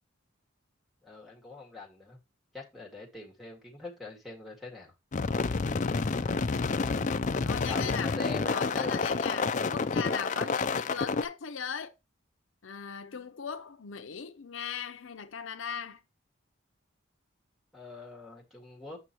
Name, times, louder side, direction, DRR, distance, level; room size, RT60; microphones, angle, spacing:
voice 1, 1.0-2.2 2.5-4.9 7.7-9.0 17.7-19.0, left 4 dB, ahead, 1.9 m, -43 dB
sound 1, 5.1-11.2, left 4 dB, 40° left, 0.4 m, -29 dB
voice 2, 7.4-8.2 8.5-11.9 12.6-16.0, left 7 dB, 75° left, 0.6 m, -39 dB
7.8 x 6.2 x 3.0 m
head